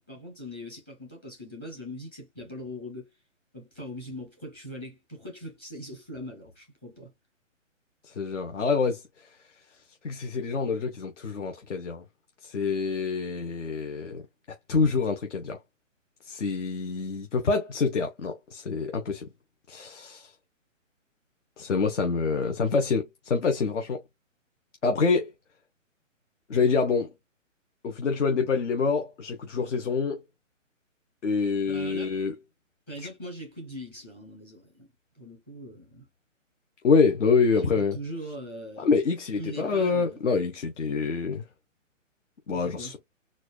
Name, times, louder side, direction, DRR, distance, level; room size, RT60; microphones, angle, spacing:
voice 1, 0.0-3.1 3.5-7.1 31.7-32.2 32.9-36.1 37.5-38.9 39.3-40.3 42.5-43.0, equal, 10° left, 0.8 m, -41 dB
voice 2, 8.0-9.3 10.0-12.0 12.4-14.2 14.7-15.6 16.2-19.3 19.7-20.3 21.6-24.0 24.8-25.3 26.5-27.1 27.8-30.2 31.2-32.3 36.8-38.0 38.8-41.4 42.5-42.9, left 4 dB, 65° left, 1.1 m, -26 dB
4.3 x 2.5 x 2.3 m
hypercardioid pair, 165°, 39 cm